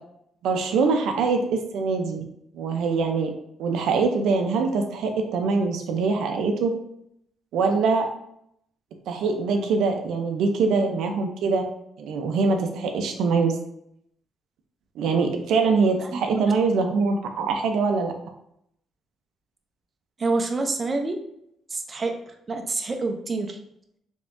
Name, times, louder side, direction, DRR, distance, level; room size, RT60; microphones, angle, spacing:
voice 1, 0.4-2.2 2.5-3.3 3.6-6.7 7.5-8.1 9.1-11.6 12.0-13.5 15.0-18.1, right 4 dB, 80° right, 4 dB, 0.5 m, -23 dB
voice 2, 16.0-16.4 20.2-21.2 21.7-22.1 22.5-23.6, right 3 dB, 35° right, 4 dB, 0.5 m, -27 dB
3.5 x 3.4 x 2.5 m, 0.74 s
cardioid pair, 90°, 0 cm